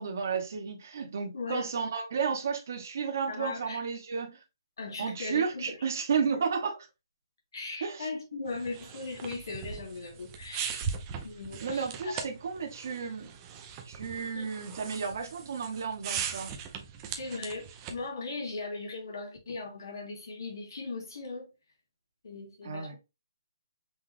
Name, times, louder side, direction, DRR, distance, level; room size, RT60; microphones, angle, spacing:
voice 1, 0.0-4.4 5.0-6.8 7.8-8.1 11.6-13.3 13.8-16.5 22.6-22.9, right 6 dB, 40° right, 1.0 m, -32 dB
voice 2, 1.3-1.7 3.3-3.8 4.8-5.9 6.3-6.4 7.5-10.9 11.2-12.3 14.3-14.5 17.1-21.5 22.2-23.0, left 3 dB, 65° left, 2.2 m, -39 dB
sound 1, 8.5-18.1, right 7 dB, 15° right, 0.4 m, -40 dB
5.5 x 2.4 x 3.2 m
hypercardioid pair, 175°, 2 cm